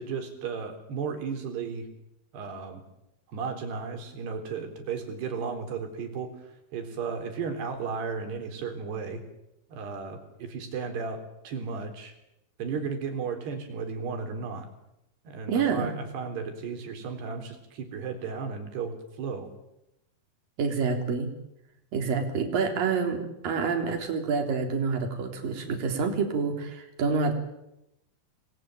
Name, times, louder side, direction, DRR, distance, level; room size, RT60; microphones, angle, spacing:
voice 1, 0.0-1.9 2.3-2.8 3.3-9.2 9.7-12.1 12.6-14.7 15.3-19.5, right 5 dB, 80° right, 6 dB, 5.8 m, -34 dB
voice 2, 15.5-16.0 20.6-21.3 21.9-27.3, right 5 dB, 60° right, 5 dB, 5.1 m, -27 dB
28.0 x 21.5 x 9.2 m, 0.86 s
omnidirectional pair, 4.7 m